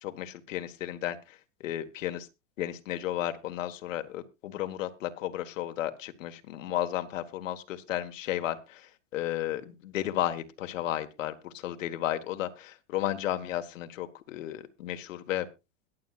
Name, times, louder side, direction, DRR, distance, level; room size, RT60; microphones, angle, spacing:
voice 1, 0.0-2.3 2.6-15.4, left 12 dB, 90° left, 7 dB, 1.6 m, -33 dB
22.0 x 8.0 x 2.4 m, 0.26 s
supercardioid pair, 155°, 38 cm